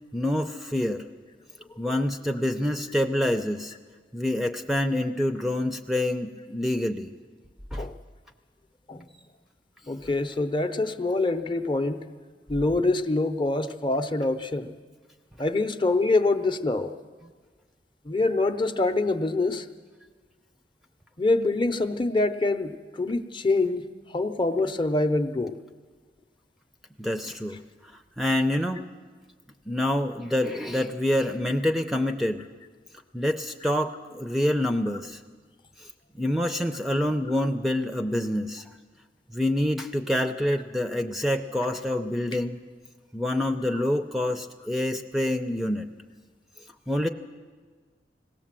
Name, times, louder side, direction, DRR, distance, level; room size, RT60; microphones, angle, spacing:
voice 1, 0.1-1.0 1.8-3.7 4.1-7.2 7.7-7.9 27.0-27.6 28.2-28.8 29.7-32.5 33.1-35.2 36.2-38.6 39.3-42.6 43.1-45.9 46.9-47.1, left 1 dB, ahead, 6 dB, 0.6 m, -26 dB
voice 2, 1.7-2.0 7.8-8.0 8.9-9.1 9.9-12.1 12.5-14.8 15.4-17.0 18.0-19.7 21.2-25.6, left 2 dB, 30° left, 8 dB, 0.8 m, -25 dB
20.0 x 17.5 x 7.5 m, 1.5 s
head